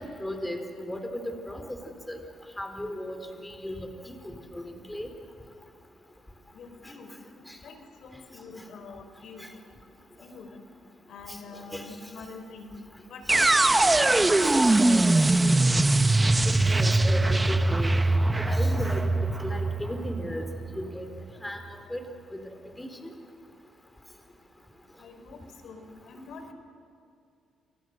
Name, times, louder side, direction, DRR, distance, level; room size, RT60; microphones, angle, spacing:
voice 1, 0.0-1.8 2.1-2.2 2.6-5.1 7.5-7.6 11.3-11.4 11.7-11.9 16.4-17.9 18.3-19.0 19.4-20.4 20.7-21.1 21.4-21.6 21.9-22.0 22.4-22.9, equal, 10° left, 5 dB, 3.9 m, -35 dB
voice 2, 6.5-7.1 7.6-9.6 10.2-10.6 11.1-12.8 13.1-15.4 25.0-26.5, left 3 dB, 70° left, 7 dB, 4.1 m, -45 dB
sound 1, 13.3-21.2, right 2 dB, 15° right, 1.0 m, -22 dB
28.5 x 27.0 x 6.7 m, 2.4 s
cardioid pair, 90°, 0 cm